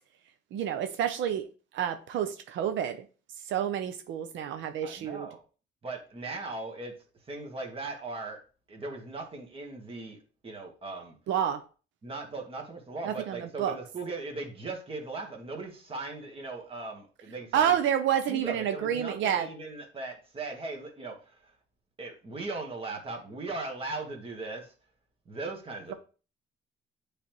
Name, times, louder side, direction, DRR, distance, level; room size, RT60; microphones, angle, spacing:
voice 1, 0.5-1.5 1.7-3.0 3.5-5.3 11.3-11.6 13.0-13.8 17.5-19.5, right 9 dB, 85° right, 0.6 m, -29 dB
voice 2, 4.8-5.4 5.8-6.9 7.2-8.4 8.7-11.2 12.0-17.7 18.3-21.5 22.0-24.7 25.2-25.9, right 3 dB, 30° right, 1.4 m, -38 dB
9.5 x 3.4 x 3.0 m
cardioid pair, 155°, 19 cm